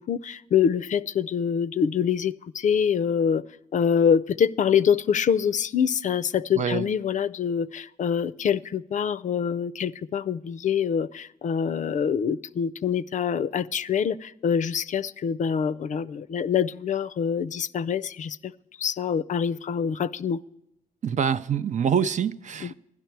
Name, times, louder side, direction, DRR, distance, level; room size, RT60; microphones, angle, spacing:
voice 1, 0.0-3.4 3.7-18.5 18.8-20.4 22.6-22.7, left 7 dB, 55° left, 18 dB, 0.4 m, -25 dB
voice 2, 6.6-6.9 21.0-22.9, right 7 dB, 55° right, 13 dB, 0.5 m, -25 dB
12.0 x 10.0 x 4.5 m, 0.84 s
cardioid pair, 60°, 15 cm